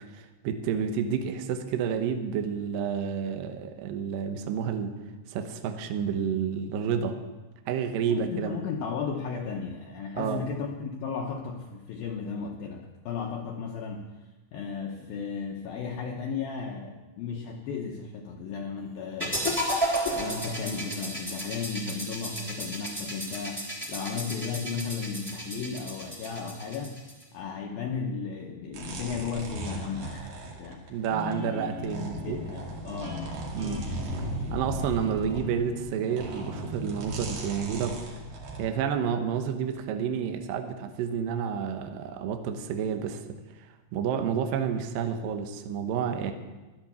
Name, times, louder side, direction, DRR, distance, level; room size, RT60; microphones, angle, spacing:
voice 1, 0.0-5.0 5.3-7.2 7.7-8.6 10.1-10.4 30.9-32.4 33.5-33.8 34.5-38.0 38.6-43.7 43.9-46.3, right 7 dB, 80° right, 6 dB, 2.0 m, -30 dB
voice 2, 8.1-14.0 14.5-19.6 20.1-27.0 27.3-30.8 31.3-31.8 32.2-33.3, left 6 dB, 80° left, 1 dB, 2.1 m, -35 dB
sound 1, 19.2-27.2, equal, 5° right, 2.1 m, -33 dB
sound 2, 28.7-31.3 31.8-38.7, right 1 dB, 60° right, 3.8 m, -37 dB
Guitar, 31.0-38.2, left 1 dB, 30° right, 2.4 m, -42 dB
13.0 x 11.5 x 7.0 m, 1.2 s
omnidirectional pair, 5.4 m